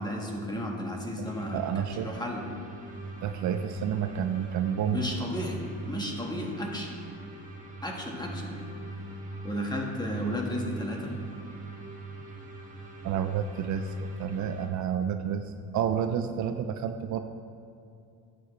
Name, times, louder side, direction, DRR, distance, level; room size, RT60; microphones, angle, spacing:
voice 1, 0.0-1.7 2.0-2.4 4.9-5.6 5.9-6.9 7.8-8.6 9.4-11.1, equal, 10° left, 0 dB, 1.5 m, -33 dB
sound 1, 1.2-14.7, right 2 dB, 25° right, 1.5 m, -41 dB
voice 2, 1.5-2.3 3.2-5.1 13.0-17.2, right 8 dB, 60° right, 8 dB, 0.6 m, -30 dB
12.0 x 7.8 x 3.3 m, 2.5 s
cardioid pair, 105°, 34 cm